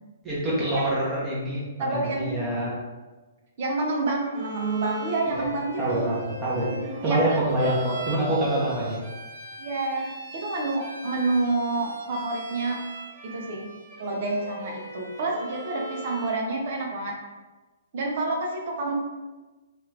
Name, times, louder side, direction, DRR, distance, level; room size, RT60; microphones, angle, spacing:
voice 1, 0.2-2.8 5.2-5.4 5.8-6.7 7.0-9.0, right 1 dB, 15° right, -7 dB, 0.9 m, -26 dB
voice 2, 1.8-2.3 3.6-6.1 6.8-7.4 9.6-10.1 10.3-12.8 13.2-13.7 14.0-17.1 17.9-18.9, right 2 dB, 50° right, 0 dB, 0.7 m, -28 dB
Bowed string instrument, 4.3-16.5, right 2 dB, 35° right, 1.2 m, -41 dB
3.0 x 2.5 x 3.1 m, 1.2 s
hypercardioid pair, 145°, 0 cm